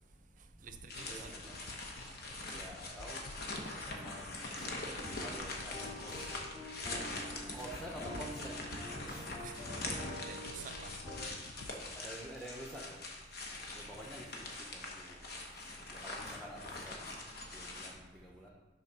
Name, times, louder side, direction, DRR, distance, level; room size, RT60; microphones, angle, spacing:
voice 1, 0.0-2.7 3.6-4.0 4.8-5.2 7.3-7.6 9.4-11.0 11.6-12.1, right 7 dB, 45° right, 9 dB, 0.5 m, -55 dB
sound 1, 0.7-13.1 13.4-13.5, left 2 dB, 80° left, 0.5 m, -54 dB
sound 2, 0.9-17.9, left 2 dB, 60° left, 1.0 m, -43 dB
voice 2, 1.1-1.7 2.5-3.2 3.9-4.5 5.2-6.4 7.5-8.5 9.1-9.2 12.0-13.0 13.7-15.0 15.9-17.0 17.5-18.5, equal, ahead, -2 dB, 0.8 m, -48 dB
sound 3, 4.6-11.2, left 1 dB, 25° left, 2.3 m, -47 dB
6.4 x 4.0 x 5.9 m, 1.2 s
head